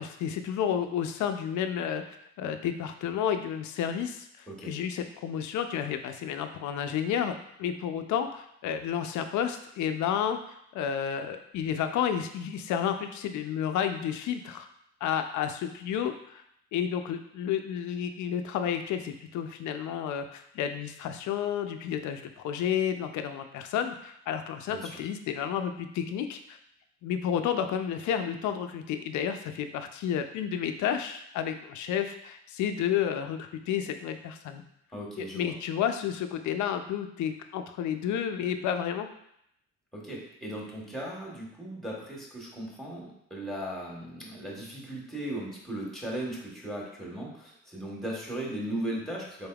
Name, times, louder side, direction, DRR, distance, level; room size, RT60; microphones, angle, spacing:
voice 1, 0.0-2.0 2.4-14.7 15.0-16.4 16.7-26.6 27.0-34.6 35.2-39.1, left 8 dB, 75° left, 7 dB, 0.5 m, -31 dB
voice 2, 34.9-35.5 39.9-49.5, right 1 dB, ahead, -3 dB, 1.2 m, -37 dB
4.1 x 3.4 x 2.3 m, 0.74 s
cardioid pair, 90°, 30 cm